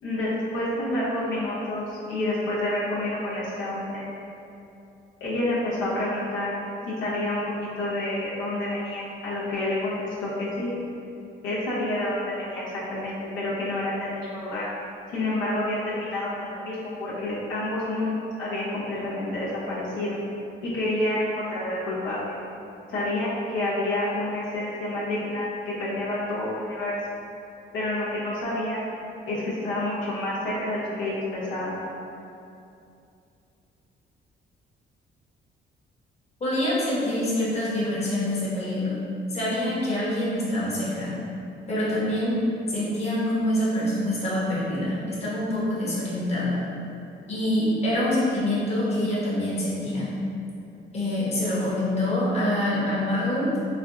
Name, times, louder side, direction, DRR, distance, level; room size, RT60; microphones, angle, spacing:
voice 1, 0.0-4.0 5.2-6.5 7.0-10.7 11.4-12.6 12.9-14.7 15.1-18.1 18.4-20.2 20.6-22.4 22.9-27.0 27.7-28.8 29.3-31.7, left 1 dB, 80° left, -9 dB, 0.8 m, -28 dB
voice 2, 36.4-39.0 39.3-41.1 41.7-42.4 42.7-46.6 47.3-50.1 50.9-53.5, left 1 dB, 35° left, -8 dB, 1.0 m, -25 dB
3.3 x 2.2 x 2.6 m, 2.7 s
cardioid pair, 90°, 20 cm